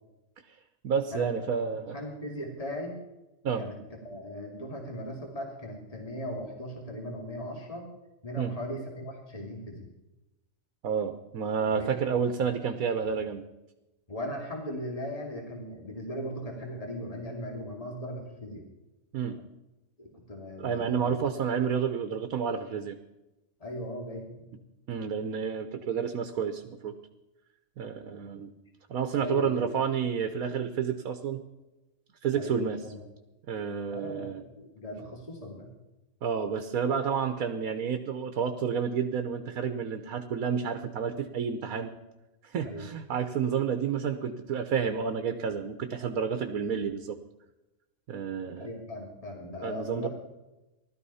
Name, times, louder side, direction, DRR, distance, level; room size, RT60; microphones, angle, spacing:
voice 1, 0.8-2.0 3.4-3.6 8.4-8.5 10.8-13.4 19.1-19.4 20.6-23.0 24.9-26.9 27.8-28.5 28.9-31.4 32.2-32.8 33.5-34.4 36.2-41.9 42.4-47.2 48.1-48.7 49.6-50.1, right 7 dB, 85° right, 7 dB, 1.4 m, -30 dB
voice 2, 1.9-3.0 3.6-3.8 4.0-7.9 8.2-9.9 11.7-12.0 14.1-18.7 20.0-21.2 23.6-24.5 29.2-29.7 32.4-33.0 33.9-35.7 42.6-42.9 48.6-50.1, equal, 25° left, 1 dB, 2.6 m, -38 dB
17.0 x 12.5 x 5.6 m, 1.0 s
omnidirectional pair, 1.5 m